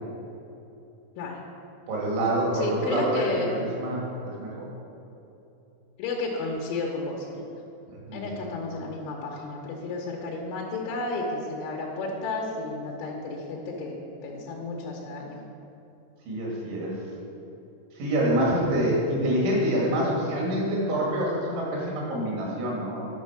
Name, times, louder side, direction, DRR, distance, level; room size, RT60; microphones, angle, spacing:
voice 1, 1.9-4.6 8.1-8.3 16.3-17.0 18.0-23.1, right 1 dB, 75° right, -4 dB, 4.4 m, -26 dB
voice 2, 2.5-3.5 6.0-7.4 8.1-14.0 14.2-15.4, left 3 dB, 90° left, -2 dB, 3.4 m, -32 dB
10.0 x 5.4 x 6.3 m, 3.0 s
omnidirectional pair, 5.5 m